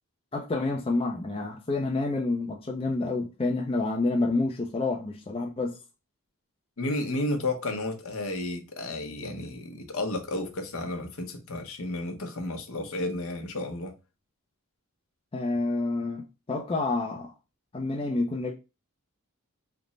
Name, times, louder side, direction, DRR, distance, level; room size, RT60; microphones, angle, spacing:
voice 1, 0.3-5.8 15.3-17.3 17.7-18.5, left 2 dB, 25° left, 0.5 m, -28 dB
voice 2, 6.8-13.9, left 2 dB, 65° left, 0.8 m, -32 dB
3.3 x 2.0 x 3.8 m
head